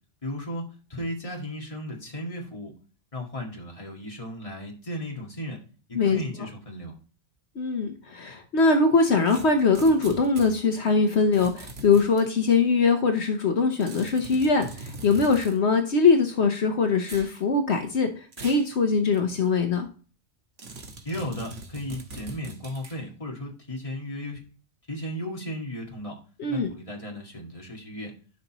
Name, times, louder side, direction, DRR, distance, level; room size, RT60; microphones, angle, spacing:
voice 1, 0.2-0.6 0.9-2.7 3.1-5.6 5.9-7.0 21.0-24.4 24.9-26.2 26.5-28.1, equal, 30° left, 0 dB, 2.1 m, -35 dB
voice 2, 7.6-19.9 26.4-26.7, left 4 dB, 70° left, 5 dB, 1.2 m, -22 dB
sound 1, 9.3-10.5 11.3-12.3 13.8-15.6 17.0-17.3 18.3-18.7 19.1-19.2 20.6-23.0, right 3 dB, 65° right, 1.6 m, -41 dB
11.5 x 5.3 x 3.0 m, 0.38 s
omnidirectional pair, 1.2 m